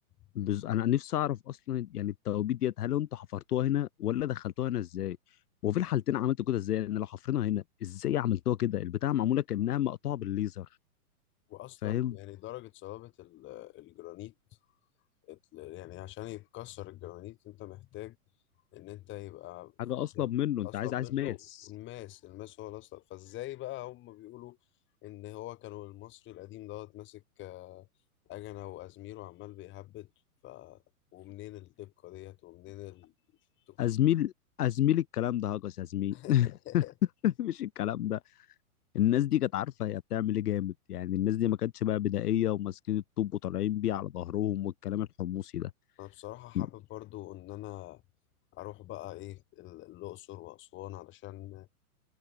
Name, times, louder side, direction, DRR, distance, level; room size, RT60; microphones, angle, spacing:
voice 1, 0.3-5.2 5.6-10.7 11.8-12.1 19.8-21.3 33.8-34.3 34.6-36.8 37.2-38.2 38.9-45.7 46.5-46.7, left 12 dB, 90° left, 0.8 m, -30 dB
voice 2, 11.5-14.3 15.2-18.2 18.7-19.7 20.1-20.3 20.6-24.6 25.0-27.9 28.3-30.1 30.4-30.8 31.1-33.1 33.7-33.9 36.1-36.9 46.0-48.0 48.5-51.7, left 16 dB, 25° left, 4.1 m, -44 dB
hypercardioid pair, 145°, 45 cm